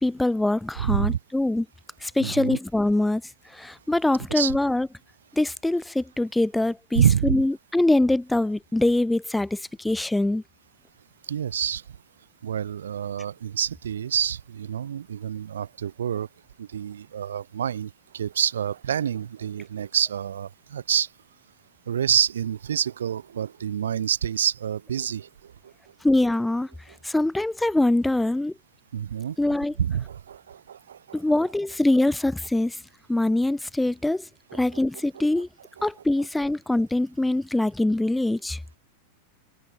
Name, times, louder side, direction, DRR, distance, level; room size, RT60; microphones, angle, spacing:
voice 1, 0.0-1.7 2.0-4.9 5.4-10.4 26.0-26.7 27.0-28.5 29.4-29.7 31.1-32.8 33.1-35.5 35.8-38.6, left 1 dB, 5° left, 0.8 m, -23 dB
voice 2, 0.8-1.2 2.2-2.6 4.3-4.5 7.0-7.4 11.3-11.8 12.4-16.3 16.6-21.1 21.9-25.3 25.6-25.7 28.9-29.4 29.8-31.2 34.5-34.8 35.1-35.4 35.8-35.9, right 9 dB, 65° right, 2.4 m, -27 dB
figure-of-eight pair, 90°, 0 cm